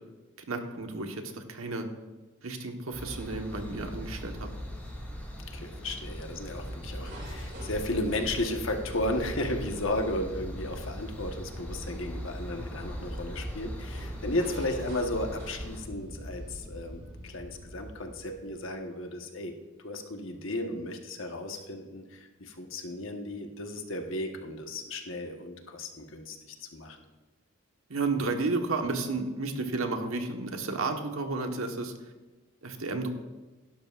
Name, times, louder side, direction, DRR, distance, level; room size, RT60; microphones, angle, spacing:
voice 1, 0.5-1.9 2.4-4.5 27.9-31.9 32.6-33.1, right 3 dB, 80° right, 4 dB, 1.3 m, -32 dB
sound 1, 2.9-15.8, equal, 10° left, 2.8 m, -41 dB
voice 2, 5.5-19.5 19.8-27.0, left 1 dB, 65° left, 3 dB, 1.3 m, -34 dB
sound 2, 6.4-18.6, equal, 50° right, 4.2 m, -42 dB
16.5 x 12.0 x 2.5 m, 1.2 s
head